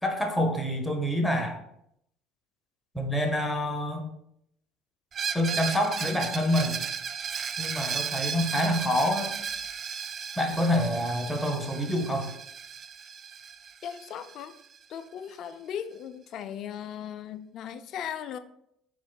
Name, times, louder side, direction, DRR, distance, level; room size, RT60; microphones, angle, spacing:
voice 1, 0.0-1.6 2.9-4.1 5.3-6.8 7.6-9.3 10.4-12.3, left 1 dB, 5° left, 3 dB, 1.0 m, -27 dB
Screech, 5.1-14.8, right 7 dB, 40° right, 0.3 m, -35 dB
voice 2, 13.8-14.5 14.9-18.4, left 9 dB, 60° left, 12 dB, 0.3 m, -37 dB
4.4 x 4.2 x 2.3 m, 0.74 s
hypercardioid pair, 70°, 0 cm